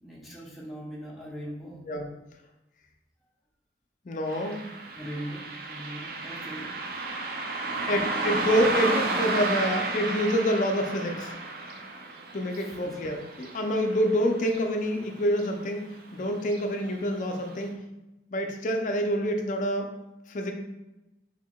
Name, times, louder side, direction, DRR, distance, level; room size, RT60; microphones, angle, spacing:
voice 1, 0.0-1.9 4.9-7.1 7.6-8.5 12.6-13.0, equal, ahead, -7 dB, 0.9 m, -41 dB
voice 2, 4.1-4.6 7.9-11.3 12.3-17.7 18.3-19.9 20.3-20.5, equal, 45° left, 4 dB, 0.5 m, -27 dB
Car passing by, 4.3-15.1 15.4-15.5 16.4-16.6 17.1-17.2 17.7-17.8, right 3 dB, 55° right, 0.4 m, -33 dB
4.6 x 3.7 x 2.3 m, 0.98 s
head